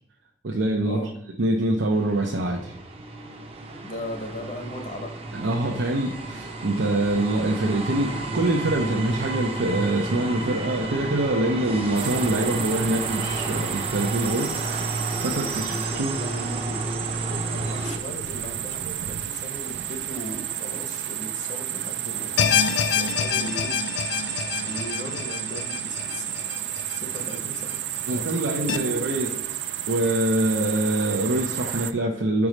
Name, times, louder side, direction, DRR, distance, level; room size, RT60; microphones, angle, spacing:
voice 1, 0.4-1.0 1.4-2.7 5.3-14.8 15.2-16.2 28.1-29.3 29.9-32.5, right 1 dB, 90° right, -1 dB, 0.7 m, -25 dB
sound 1, 1.9-18.0, right 2 dB, 30° right, 0.6 m, -32 dB
voice 2, 3.8-5.2 15.4-22.4 22.9-23.8 24.6-26.5 26.9-27.8 28.1-29.5, equal, 40° left, 4 dB, 0.9 m, -37 dB
sound 2, 11.9-31.9, right 11 dB, 70° right, 0.4 m, -32 dB
sound 3, 22.4-27.6 28.0-28.1 28.7-28.8, left 8 dB, 65° left, 0.4 m, -27 dB
4.8 x 4.1 x 5.0 m, 0.75 s
head